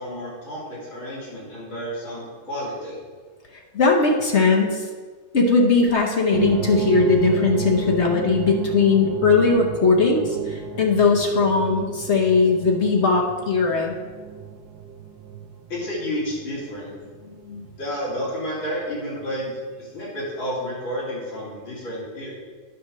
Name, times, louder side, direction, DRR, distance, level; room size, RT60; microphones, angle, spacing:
voice 1, 0.0-3.0 15.7-16.9 17.8-22.4, equal, 80° left, -8 dB, 3.9 m, -31 dB
voice 2, 3.5-4.9 5.3-14.0 17.2-17.7, left 4 dB, 45° left, 0 dB, 1.0 m, -19 dB
sound 1, 6.3-18.9 19.2-19.3 20.0-20.1, right 7 dB, 70° right, 1.0 m, -32 dB
10.0 x 4.3 x 6.2 m, 1.5 s
omnidirectional pair, 2.1 m